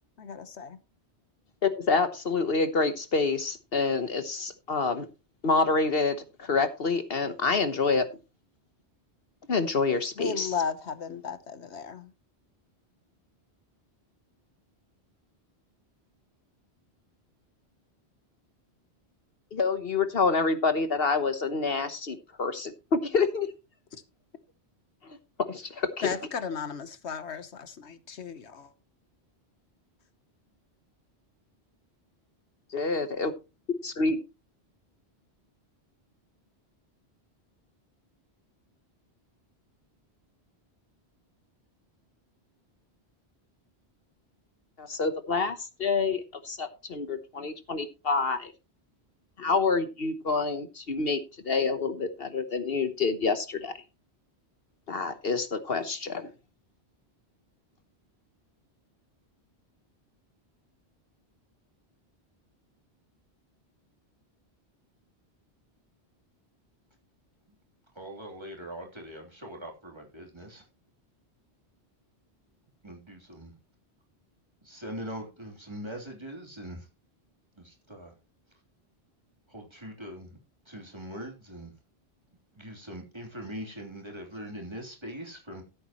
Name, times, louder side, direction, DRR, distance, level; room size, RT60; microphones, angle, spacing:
voice 1, 0.2-0.8 10.2-12.1 26.0-28.7, left 6 dB, 80° left, 1.4 m, -35 dB
voice 2, 1.6-5.1 5.4-8.1 9.5-10.5 19.5-23.5 25.5-26.1 32.7-33.3 33.8-34.2 44.8-48.5 49.4-51.2 51.4-53.7 54.9-56.3, left 4 dB, 60° left, 1.3 m, -27 dB
voice 3, 67.9-70.7 72.8-73.6 74.6-76.9 77.6-78.1 79.5-80.4 80.6-81.7 82.5-85.6, equal, 25° right, 3.3 m, -42 dB
15.0 x 8.6 x 3.0 m
omnidirectional pair, 1.1 m